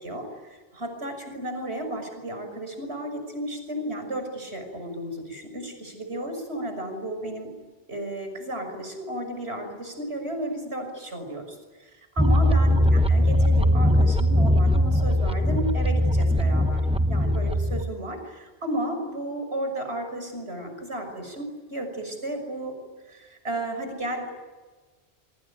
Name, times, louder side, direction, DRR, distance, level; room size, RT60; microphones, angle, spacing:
voice 1, 0.0-7.5 7.9-22.8 23.1-24.4, right 1 dB, 65° right, 5 dB, 6.6 m, -33 dB
sound 1, 12.2-17.8, equal, 5° right, 1.0 m, -20 dB
26.5 x 24.5 x 9.2 m, 1.3 s
omnidirectional pair, 1.2 m